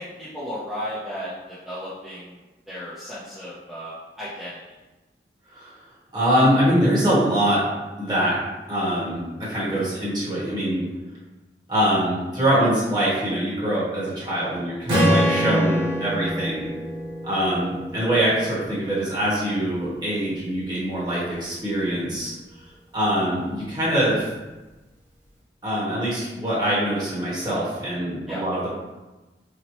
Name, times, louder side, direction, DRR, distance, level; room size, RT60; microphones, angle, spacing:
voice 1, 0.0-2.4 2.7-4.6 28.3-28.4, equal, ahead, -12 dB, 0.6 m, -34 dB
voice 2, 6.1-7.6 8.0-8.4 8.7-10.8 11.7-16.7 17.2-22.3 22.9-24.3 25.6-28.7, equal, 25° right, -8 dB, 1.1 m, -23 dB
Strum, 14.9-19.1, equal, 90° right, 1.0 m, -25 dB
4.2 x 2.1 x 2.9 m, 1.1 s
head